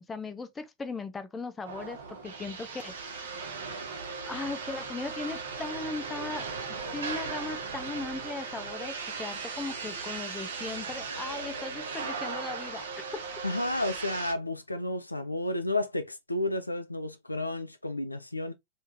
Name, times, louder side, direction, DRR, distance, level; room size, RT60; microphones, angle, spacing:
voice 1, 0.1-2.9 4.2-6.5 6.9-13.2, left 3 dB, 15° left, 0.6 m, -38 dB
sound 1, 1.6-14.3, right 4 dB, 65° right, 1.0 m, -37 dB
voice 2, 13.4-18.5, left 1 dB, 85° left, 0.5 m, -32 dB
3.5 x 3.1 x 2.6 m
figure-of-eight pair, 90°, 0 cm